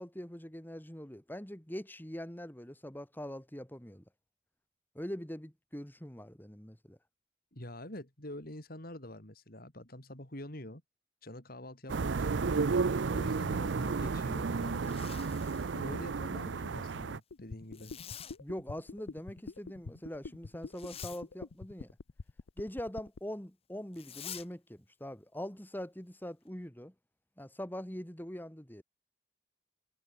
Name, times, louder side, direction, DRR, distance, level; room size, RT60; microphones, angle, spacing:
voice 1, 0.0-4.0 5.0-7.0 18.4-22.0 22.6-26.9 27.4-28.8, equal, 10° left, 2.1 m, -43 dB
voice 2, 7.5-10.8 11.2-12.7 13.1-15.1 15.4-17.9, left 1 dB, 50° left, 4.0 m, -46 dB
sound 1, 11.9-17.2, right 4 dB, 70° right, 0.5 m, -32 dB
Zipper (clothing), 14.7-15.7 17.7-18.4 20.7-21.2 23.9-24.5, left 9 dB, 30° left, 1.5 m, -47 dB
sound 2, 17.3-23.2, left 3 dB, 85° left, 0.7 m, -45 dB
head